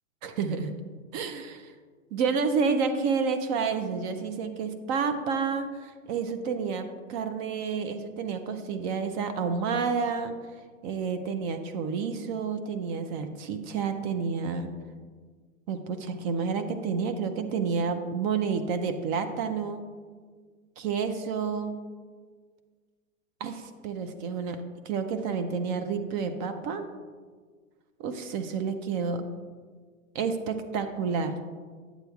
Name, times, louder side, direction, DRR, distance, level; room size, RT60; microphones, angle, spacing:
voice 1, 0.2-0.7 1.1-1.7 2.1-10.3 10.8-14.7 15.7-19.8 20.8-21.8 23.4-24.6 24.9-26.8 28.0-29.2 30.1-31.3, right 5 dB, 35° right, 8 dB, 0.5 m, -30 dB
9.0 x 8.0 x 2.3 m, 1.6 s
hypercardioid pair, 105°, 41 cm